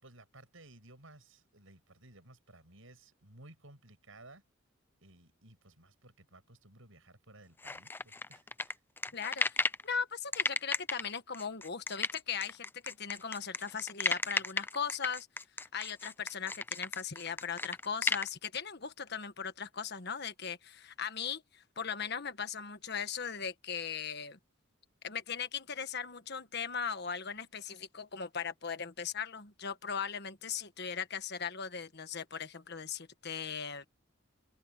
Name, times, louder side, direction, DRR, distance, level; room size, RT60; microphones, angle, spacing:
voice 1, 0.0-4.4 5.0-8.8, right 2 dB, 75° right, 7.6 m, -57 dB
sound 1, 7.6-9.8 10.3-18.3, left 3 dB, 10° left, 0.4 m, -34 dB
voice 2, 9.1-15.3 15.7-24.4 25.0-33.8, left 6 dB, 55° left, 1.5 m, -38 dB
open air
head